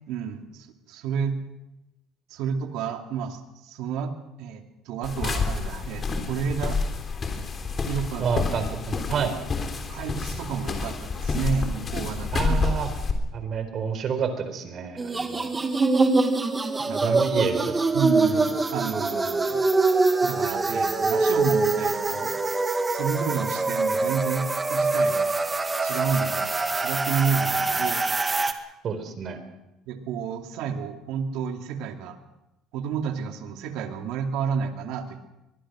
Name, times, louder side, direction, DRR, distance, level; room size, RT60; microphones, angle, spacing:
voice 1, 0.1-1.4 2.3-6.8 7.9-8.4 9.1-9.2 9.9-12.6 16.9-17.2 17.9-19.6 20.2-22.4 22.9-25.3 25.8-26.5 26.7-28.0 29.9-32.2 32.7-35.2, right 6 dB, 75° right, 6 dB, 2.5 m, -30 dB
sound 1, 5.0-13.1, left 4 dB, 35° left, 3.4 m, -29 dB
voice 2, 8.2-9.3 12.3-12.9 13.3-15.6 16.9-17.8 28.8-29.4, right 6 dB, 50° right, 9 dB, 4.1 m, -28 dB
sound 2, 15.0-28.5, right 3 dB, 20° right, 2.0 m, -24 dB
23.0 x 20.5 x 6.3 m, 0.95 s
supercardioid pair, 100°, 0 cm